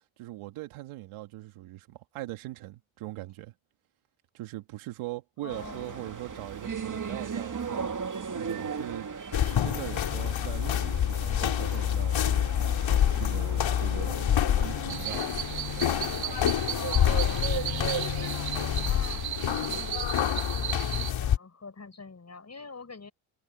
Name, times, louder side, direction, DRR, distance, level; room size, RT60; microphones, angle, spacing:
voice 1, 0.2-3.5 4.3-7.9 8.3-9.1 9.6-12.5 13.2-14.3 14.6-15.3, right 17 dB, 85° right, 2.8 m, -40 dB
voice 2, 5.4-6.1 16.7-20.1 20.5-23.1, left 4 dB, 35° left, 5.6 m, -44 dB
sound 1, 5.5-19.9, right 6 dB, 40° right, 2.7 m, -39 dB
sound 2, 9.3-21.4, left 10 dB, 65° left, 3.4 m, -27 dB
sound 3, 14.9-21.1, right 10 dB, 70° right, 3.0 m, -34 dB
supercardioid pair, 60°, 48 cm